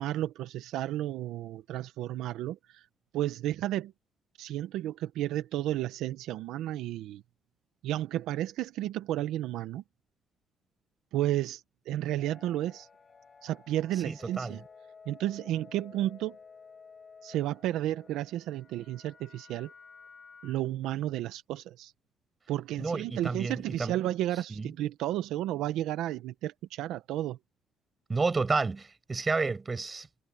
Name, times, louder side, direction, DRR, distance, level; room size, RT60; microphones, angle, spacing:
voice 1, 0.0-2.9 3.1-3.9 4.4-7.2 7.8-9.8 11.1-12.9 13.4-14.6 15.1-16.4 17.2-19.7 20.4-21.9 22.5-27.4, right 13 dB, 85° right, 0.9 m, -32 dB
sound 1, 12.2-20.5, left 5 dB, 35° left, 6.0 m, -54 dB
voice 2, 14.0-14.6 22.8-23.9 24.6-24.7 28.1-30.1, right 4 dB, 25° right, 6.7 m, -30 dB
cardioid pair, 110°, 0 cm